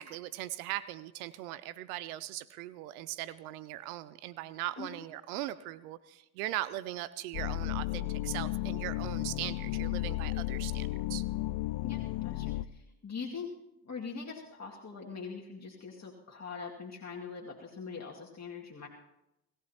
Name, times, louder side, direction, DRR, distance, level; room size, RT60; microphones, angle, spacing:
voice 1, 0.0-11.2, right 15 dB, 90° right, 17 dB, 0.5 m, -39 dB
sound 1, 7.3-12.6, left 17 dB, 70° left, 0.6 m, -34 dB
voice 2, 11.8-13.5 13.8-18.9, left 5 dB, 35° left, -2 dB, 2.2 m, -42 dB
26.0 x 14.5 x 2.9 m, 0.89 s
hypercardioid pair, 50°, 43 cm